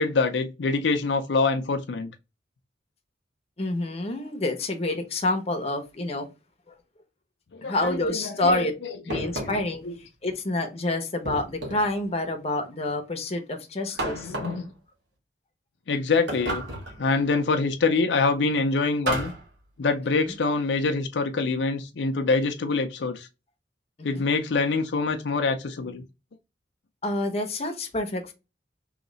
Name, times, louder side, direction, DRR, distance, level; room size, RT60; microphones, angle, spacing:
voice 1, 0.0-2.1 7.5-10.0 13.9-14.7 15.9-16.6 17.0-19.3 19.8-23.3 24.0-26.0, left 3 dB, 90° left, 0.5 m, -25 dB
voice 2, 3.6-6.3 7.6-8.7 9.0-9.8 10.2-14.3 20.2-20.4 24.0-24.2 27.0-28.3, left 2 dB, 35° left, 0.8 m, -28 dB
sound 1, 9.1-9.8 11.2-12.0 14.0-14.7 16.3-17.0 19.1-19.5, right 1 dB, 85° right, 1.3 m, -32 dB
3.1 x 2.8 x 3.9 m
head